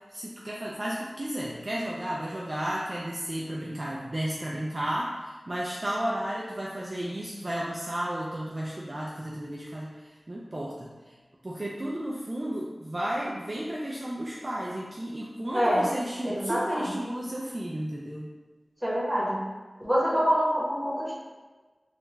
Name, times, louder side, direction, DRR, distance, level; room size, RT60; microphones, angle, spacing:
voice 1, 0.1-11.1 11.4-18.3, right 1 dB, 40° right, -4 dB, 0.4 m, -33 dB
voice 2, 15.5-15.9 16.2-16.9 18.8-19.4 19.8-21.1, equal, 15° right, -6 dB, 1.1 m, -25 dB
3.3 x 2.4 x 3.1 m, 1.3 s
wide cardioid pair, 55°, 0 cm